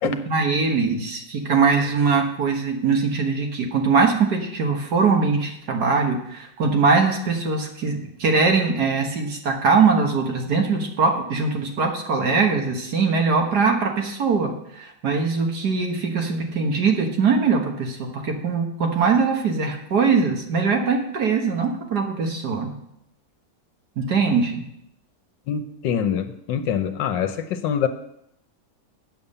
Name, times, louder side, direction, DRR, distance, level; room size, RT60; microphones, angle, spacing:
voice 1, 0.0-22.7 24.0-24.7, right 4 dB, 60° right, 2 dB, 1.9 m, -21 dB
voice 2, 25.5-27.9, left 8 dB, 80° left, 8 dB, 1.5 m, -25 dB
8.6 x 7.1 x 6.7 m, 0.77 s
omnidirectional pair, 2.0 m